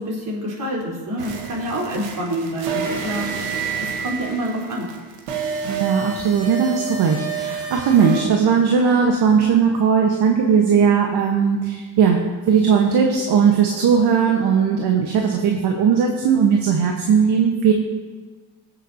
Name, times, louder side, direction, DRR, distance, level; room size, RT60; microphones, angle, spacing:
voice 1, 0.0-4.9, right 1 dB, 45° right, -4 dB, 3.9 m, -27 dB
sound 1, 1.2-8.2, right 6 dB, 85° right, 1.6 m, -29 dB
voice 2, 5.6-12.2 12.5-17.7, right 6 dB, 60° right, 2 dB, 1.3 m, -18 dB
19.5 x 7.5 x 2.8 m, 1.4 s
supercardioid pair, 90°, 44 cm